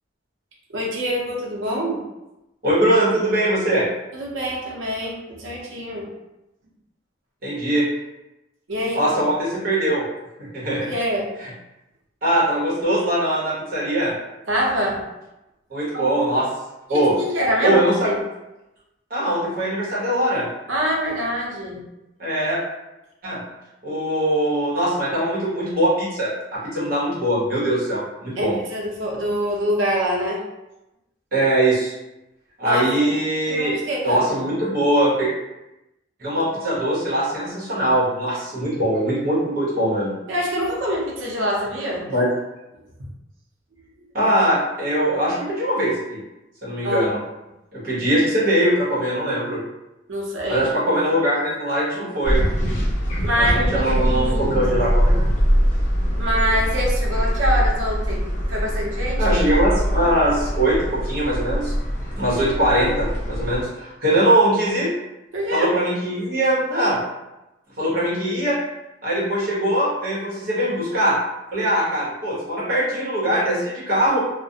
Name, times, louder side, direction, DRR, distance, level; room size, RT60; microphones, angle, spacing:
voice 1, 0.7-2.0 4.1-6.1 8.7-9.2 10.7-11.3 14.5-15.0 15.9-16.1 16.9-18.2 20.7-21.8 28.4-30.4 32.6-33.1 33.5-34.2 40.3-42.1 46.8-47.1 50.1-50.6 53.2-54.6 56.2-59.4 65.3-65.7, equal, 85° right, -2 dB, 0.7 m, -25 dB
voice 2, 2.6-3.9 7.4-7.9 8.9-10.0 10.4-10.9 11.4-11.5 12.2-14.1 15.7-16.5 16.9-17.1 17.6-18.1 19.1-20.5 22.2-22.6 23.2-23.4 23.8-28.6 31.3-31.9 32.6-33.7 34.0-35.3 36.2-40.1 42.1-42.3 44.1-46.2 46.6-47.2 47.7-49.6 50.5-52.4 53.4-55.3 59.2-61.7 62.2-64.9 65.5-67.0 67.8-68.6 69.0-71.2 71.5-74.2, right 1 dB, 50° right, -8 dB, 1.0 m, -21 dB
sound 1, 52.2-63.6, equal, 40° left, 0.6 m, -22 dB
2.4 x 2.1 x 2.7 m, 0.96 s
head